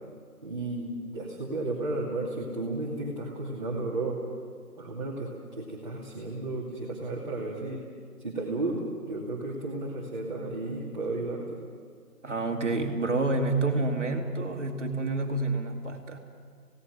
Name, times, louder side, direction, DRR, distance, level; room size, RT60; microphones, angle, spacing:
voice 1, 0.4-4.2 4.8-7.8 8.2-11.6, right 2 dB, 30° right, -5 dB, 2.5 m, -33 dB
voice 2, 12.2-16.2, right 2 dB, 50° right, 3 dB, 2.5 m, -28 dB
28.5 x 17.5 x 6.3 m, 2.1 s
figure-of-eight pair, 165°, 47 cm